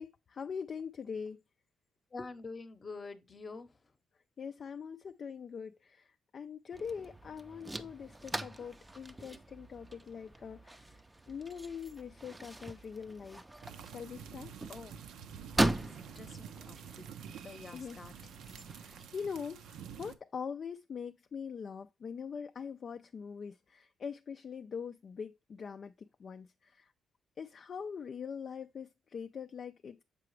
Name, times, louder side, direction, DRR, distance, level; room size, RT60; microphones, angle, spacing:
voice 1, 0.0-1.4 4.4-11.0 11.3-13.4 13.9-14.5 17.7-18.0 18.7-26.9 27.4-30.0, left 6 dB, 50° left, 0.3 m, -43 dB
voice 2, 2.1-3.9 14.7-15.0 15.6-17.1 17.4-18.3, left 3 dB, 30° left, 0.8 m, -47 dB
sound 1, 6.7-19.0, right 1 dB, 15° right, 0.5 m, -40 dB
sound 2, 13.6-20.2, right 8 dB, 80° right, 0.5 m, -49 dB
6.8 x 4.8 x 3.1 m
cardioid pair, 90°, 0 cm